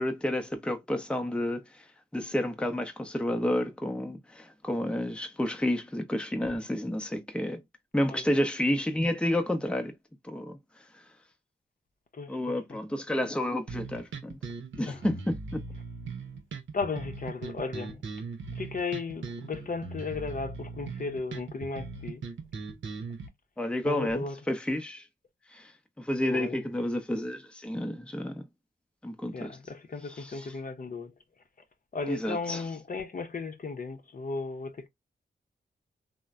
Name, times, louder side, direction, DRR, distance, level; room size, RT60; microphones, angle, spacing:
voice 1, 0.0-1.8 2.1-7.6 7.9-9.9 10.2-11.0 12.3-14.4 14.8-15.6 23.6-25.1 25.5-25.7 26.0-28.4 29.0-29.6 30.1-30.5 32.0-32.6, left 1 dB, 5° left, 0.6 m, -30 dB
voice 2, 12.1-12.8 14.9-15.0 16.7-18.0 18.5-22.2 23.8-24.4 26.3-26.6 29.3-31.1 31.9-34.9, left 4 dB, 45° left, 0.7 m, -35 dB
sound 1, 13.7-23.3, right 4 dB, 70° right, 0.7 m, -39 dB
3.0 x 2.1 x 2.3 m
cardioid pair, 45°, 20 cm